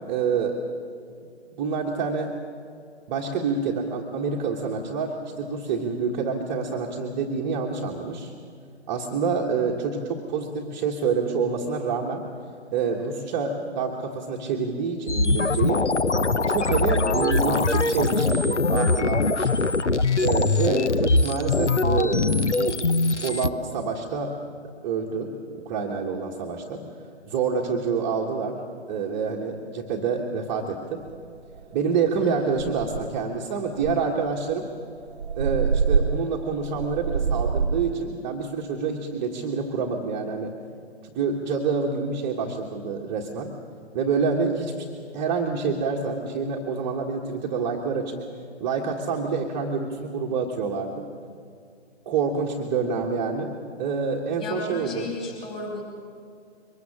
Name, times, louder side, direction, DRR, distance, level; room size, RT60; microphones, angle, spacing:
voice 1, 0.1-0.6 1.6-2.3 3.1-8.3 8.9-12.2 12.7-15.8 16.5-19.5 20.2-22.8 23.2-24.3 24.8-25.3 25.6-26.8 27.2-28.6 28.9-31.0 31.7-34.7 35.4-40.5 41.1-43.5 43.9-44.8 45.1-48.2 48.6-51.1 52.0-53.5 53.8-55.1, right 5 dB, 15° right, -1 dB, 1.3 m, -27 dB
sound 1, 15.1-23.5, left 3 dB, 85° left, 1.0 m, -22 dB
sound 2, 31.1-31.2 31.6-31.8 32.2-32.3 32.5-33.2 33.8-38.0, right 5 dB, 65° right, 0.7 m, -26 dB
voice 2, 54.4-55.8, left 2 dB, 15° left, 0 dB, 4.9 m, -34 dB
23.5 x 20.5 x 7.3 m, 2.4 s
figure-of-eight pair, 140°, 34 cm